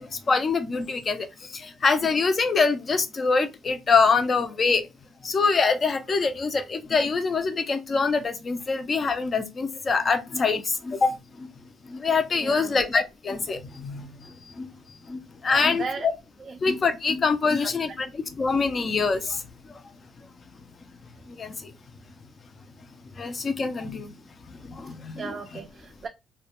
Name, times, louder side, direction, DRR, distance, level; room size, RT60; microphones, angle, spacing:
voice 1, 0.0-4.8 5.2-11.5 11.9-14.7 15.1-15.9 16.6-18.1 18.4-19.4 21.3-21.7 23.2-24.1 24.6-25.3, left 4 dB, 35° left, 0.4 m, -25 dB
voice 2, 12.3-12.8 15.5-16.1 16.4-16.6 17.5-17.7 25.2-26.1, right 5 dB, 35° right, 0.3 m, -36 dB
2.2 x 2.1 x 2.9 m
cardioid pair, 105°, 0 cm